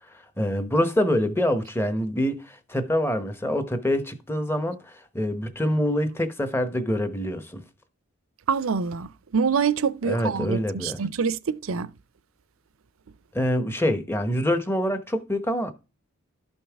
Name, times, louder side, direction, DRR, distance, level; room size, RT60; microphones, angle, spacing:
voice 1, 0.4-7.6 10.0-11.0 13.3-15.7, equal, 10° left, 0.9 m, -25 dB
voice 2, 8.5-11.9, right 6 dB, 70° right, 0.5 m, -26 dB
12.5 x 5.4 x 3.5 m
head